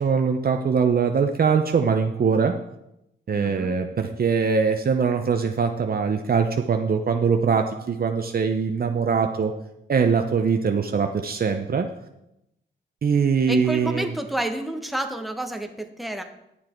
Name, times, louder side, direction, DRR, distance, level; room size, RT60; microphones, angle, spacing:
voice 1, 0.0-2.5 3.3-9.5 9.9-11.9 13.0-14.1, right 6 dB, 50° right, 5 dB, 0.7 m, -22 dB
voice 2, 3.3-3.8 13.5-16.2, right 1 dB, ahead, 4 dB, 1.2 m, -30 dB
11.5 x 7.4 x 4.5 m, 0.84 s
cardioid pair, 75°, 19 cm